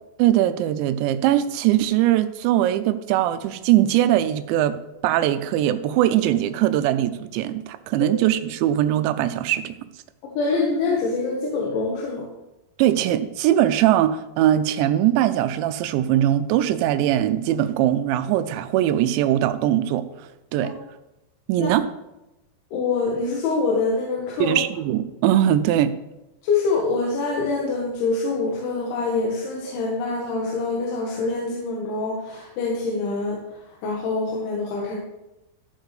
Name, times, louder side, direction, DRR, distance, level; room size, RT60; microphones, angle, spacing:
voice 1, 0.2-4.8 5.0-9.7 12.8-20.8 21.5-21.9 24.4-25.9, right 12 dB, 85° right, 11 dB, 2.9 m, -21 dB
voice 2, 10.4-12.3 21.6-21.7 22.7-24.6 26.4-35.0, left 3 dB, 85° left, -3 dB, 3.9 m, -25 dB
14.0 x 8.1 x 3.3 m, 0.95 s
omnidirectional pair, 5.2 m